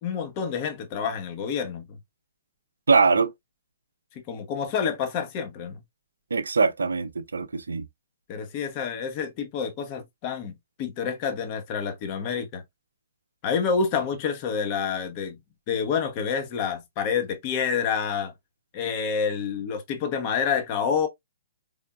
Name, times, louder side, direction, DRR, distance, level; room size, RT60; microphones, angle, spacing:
voice 1, 0.0-1.9 4.3-5.8 8.3-12.6 13.4-15.4 15.7-18.3 18.7-21.1, left 6 dB, 35° left, 0.9 m, -28 dB
voice 2, 2.9-3.3 6.3-7.9, right 4 dB, 70° right, 0.5 m, -22 dB
4.4 x 3.6 x 2.4 m
figure-of-eight pair, 120°, 0 cm